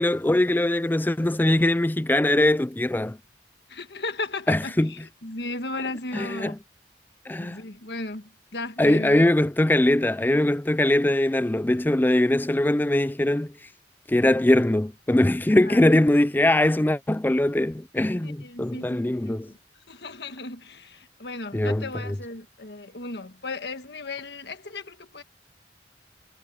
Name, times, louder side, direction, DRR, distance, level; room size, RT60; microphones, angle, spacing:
voice 1, 0.0-3.2 4.5-4.9 6.1-6.6 7.3-7.6 8.8-13.5 14.1-19.5 21.5-22.1, left 1 dB, 10° left, 0.4 m, -22 dB
voice 2, 3.7-6.5 7.4-9.2 15.6-15.8 18.2-19.6 19.9-25.2, left 2 dB, 70° left, 1.6 m, -36 dB
head